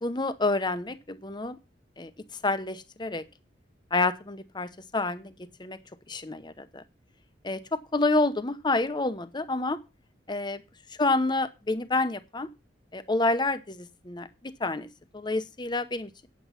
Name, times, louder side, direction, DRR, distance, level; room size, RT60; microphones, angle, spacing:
voice 1, 0.0-1.6 2.0-2.1 2.4-3.2 3.9-5.3 5.6-5.8 6.1-6.8 7.4-9.8 10.3-10.6 11.0-12.5 12.9-14.9 15.1-16.3, left 2 dB, 25° left, 12 dB, 0.8 m, -28 dB
9.3 x 8.2 x 5.7 m, 0.28 s
head